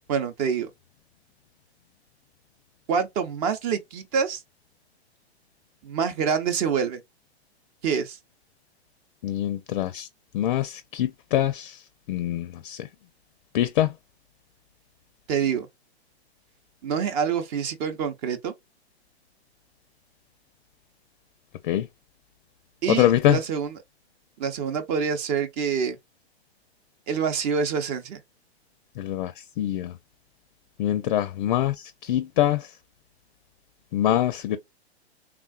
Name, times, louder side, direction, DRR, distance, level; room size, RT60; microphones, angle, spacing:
voice 1, 0.1-0.7 2.9-4.4 5.8-7.0 7.8-8.2 15.3-15.7 16.8-18.5 22.8-23.8 24.4-26.0 27.1-28.2, right 6 dB, 35° right, 0.7 m, -26 dB
voice 2, 9.2-10.1 10.3-11.7 12.1-12.8 13.5-13.9 21.7-21.8 22.9-23.4 29.0-29.3 29.6-29.9 30.8-31.7 32.1-32.6 33.9-34.6, left 12 dB, 45° left, 0.5 m, -23 dB
3.5 x 2.3 x 2.2 m
hypercardioid pair, 125°, 33 cm